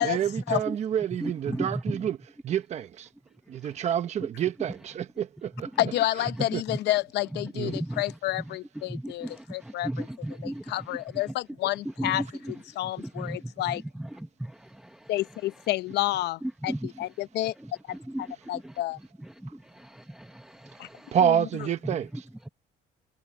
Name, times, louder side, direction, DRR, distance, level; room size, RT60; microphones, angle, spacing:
voice 1, 0.0-2.2 2.4-3.1 3.5-5.7 6.5-6.6 7.5-7.8 21.1-22.2, right 9 dB, 40° right, 1.0 m, -28 dB
voice 2, 1.2-2.0 3.6-3.7 4.2-4.3 5.8-5.9 6.4-6.8 7.4-8.0 8.8-11.0 12.0-12.5 13.0-15.1 16.4-16.9 17.6-18.8 19.2-21.2 21.8-22.2, right 1 dB, 5° right, 0.8 m, -36 dB
voice 3, 5.8-10.1 10.4-12.2 12.8-13.8 15.1-17.5 18.2-19.0 20.8-20.9 21.2-21.4, left 15 dB, 65° left, 0.8 m, -29 dB
cardioid pair, 165°, 18 cm